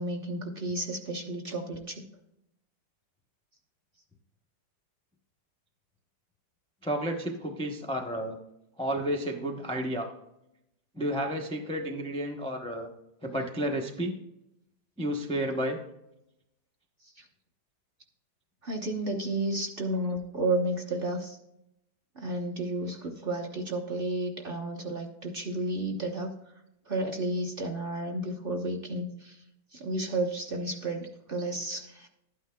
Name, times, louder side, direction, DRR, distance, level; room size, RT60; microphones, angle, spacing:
voice 1, 0.0-2.1 17.0-17.2 18.6-21.4 22.1-26.3 26.9-29.4 29.7-32.1, right 2 dB, 35° right, 1 dB, 1.0 m, -32 dB
voice 2, 6.8-8.4 8.8-10.1 10.9-12.9 13.2-14.1 15.0-15.8, equal, 10° left, 1 dB, 0.4 m, -31 dB
12.0 x 9.2 x 2.2 m, 0.85 s
omnidirectional pair, 1.9 m